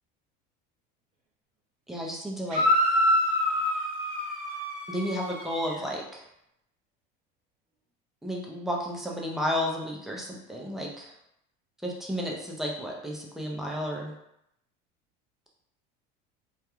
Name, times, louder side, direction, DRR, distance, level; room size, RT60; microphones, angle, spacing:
voice 1, 1.9-2.7 4.9-6.2 8.2-11.1 11.8-14.1, equal, ahead, -2 dB, 0.4 m, -32 dB
sound 1, 2.5-5.8, left 1 dB, 35° right, 0.8 m, -26 dB
2.3 x 2.2 x 2.9 m, 0.79 s
cardioid pair, 135°, 21 cm